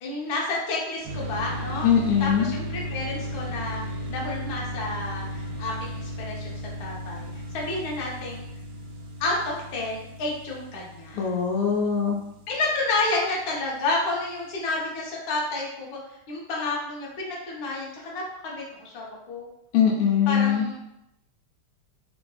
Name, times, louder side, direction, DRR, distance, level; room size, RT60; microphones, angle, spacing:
voice 1, 0.0-1.9 2.2-3.8 4.1-6.5 6.8-7.3 7.5-8.4 9.2-11.3 12.5-16.0 16.3-19.5 20.3-20.8, left 2 dB, 60° left, -4 dB, 1.0 m, -30 dB
sound 1, 1.0-13.5, equal, 85° right, 0.8 m, -36 dB
voice 2, 1.8-2.5 11.1-12.2 19.7-20.7, left 8 dB, 85° left, 0 dB, 1.5 m, -21 dB
3.6 x 2.5 x 2.3 m, 0.84 s
omnidirectional pair, 2.4 m